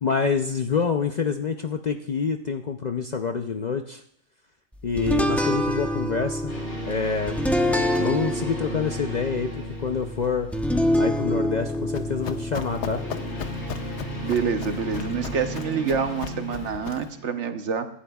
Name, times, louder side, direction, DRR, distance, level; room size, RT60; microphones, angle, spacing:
voice 1, 0.0-4.0 4.8-6.5 6.9-7.4 8.0-10.5 11.0-13.0, left 5 dB, 50° left, 6 dB, 0.5 m, -27 dB
sound 1, 5.0-15.6, left 1 dB, ahead, 0.7 m, -27 dB
sound 2, 6.5-10.9 12.5-17.3, right 1 dB, 85° left, 4.7 m, -36 dB
Run, 11.6-17.2, left 7 dB, 70° left, 1.0 m, -37 dB
voice 2, 14.2-17.9, right 6 dB, 65° right, 8 dB, 1.2 m, -27 dB
25.5 x 11.5 x 2.3 m, 0.69 s
omnidirectional pair, 1.3 m